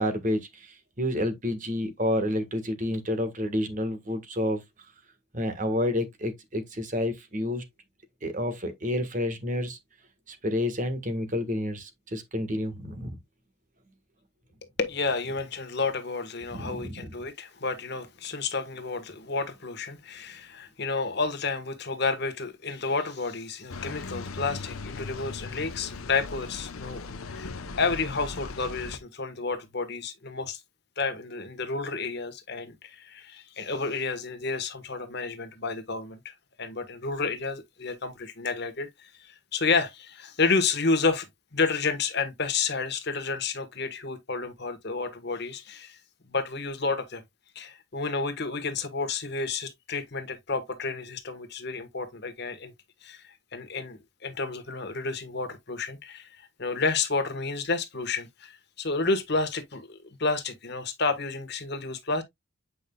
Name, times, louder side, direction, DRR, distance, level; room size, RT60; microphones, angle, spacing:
voice 1, 0.0-4.6 5.3-7.6 8.2-9.8 10.3-13.2 16.5-17.1, left 1 dB, 35° right, 1.5 m, -29 dB
voice 2, 14.8-30.6 31.0-36.3 36.6-41.3 41.5-46.0 46.3-47.2 47.5-52.7 53.0-62.2, left 4 dB, 50° left, 1.4 m, -30 dB
sound 1, 23.7-29.0, left 3 dB, 80° left, 0.9 m, -38 dB
8.5 x 5.3 x 2.3 m
head